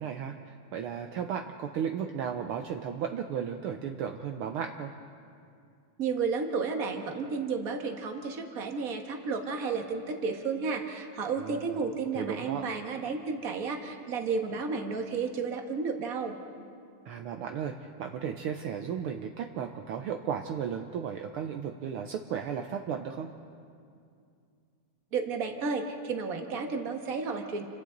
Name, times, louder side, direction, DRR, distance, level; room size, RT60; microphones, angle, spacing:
voice 1, 0.0-4.9 11.4-11.8 12.1-12.6 17.0-23.3, right 8 dB, 75° right, 4 dB, 1.3 m, -35 dB
voice 2, 6.0-16.4 25.1-27.6, right 4 dB, 40° right, 3 dB, 1.5 m, -32 dB
29.5 x 25.5 x 4.0 m, 2.4 s
omnidirectional pair, 3.4 m